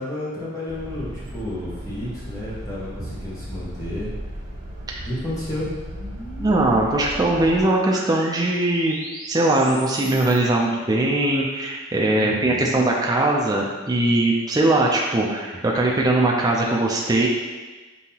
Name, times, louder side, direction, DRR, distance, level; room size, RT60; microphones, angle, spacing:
voice 1, 0.0-4.1 5.0-5.7 12.1-12.7, left 1 dB, 15° left, -8 dB, 1.0 m, -31 dB
sound 1, 0.7-7.6, equal, 60° right, 1.0 m, -36 dB
sound 2, 3.7-10.4, right 2 dB, 85° right, 0.9 m, -39 dB
voice 2, 6.4-9.0 9.3-17.3, right 2 dB, 20° right, -2 dB, 0.4 m, -20 dB
5.4 x 2.8 x 2.8 m, 1.3 s
head